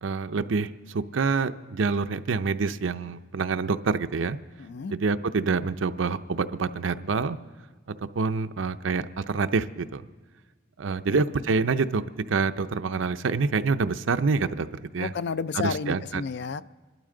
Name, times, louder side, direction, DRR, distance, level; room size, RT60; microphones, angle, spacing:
voice 1, 0.0-4.4 4.9-7.4 8.0-10.0 10.8-12.0 12.3-14.7 14.9-15.1 15.6-16.2, right 4 dB, 65° right, 11 dB, 0.5 m, -26 dB
voice 2, 4.6-4.9 11.1-11.2 15.0-16.6, left 5 dB, 55° left, 15 dB, 0.4 m, -31 dB
27.5 x 12.5 x 3.8 m, 1.4 s
head